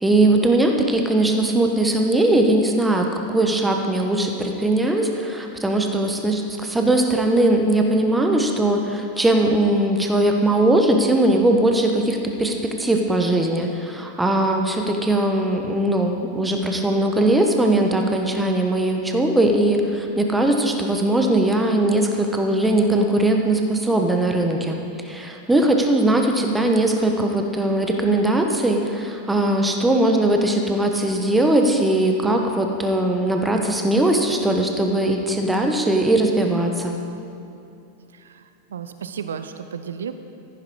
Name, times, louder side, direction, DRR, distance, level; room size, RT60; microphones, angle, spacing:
voice 1, 0.0-37.0, right 1 dB, 5° right, 3 dB, 1.3 m, -20 dB
voice 2, 38.1-40.1, right 7 dB, 65° right, 10 dB, 0.7 m, -33 dB
14.0 x 11.0 x 4.8 m, 2.6 s
figure-of-eight pair, 90°, 0 cm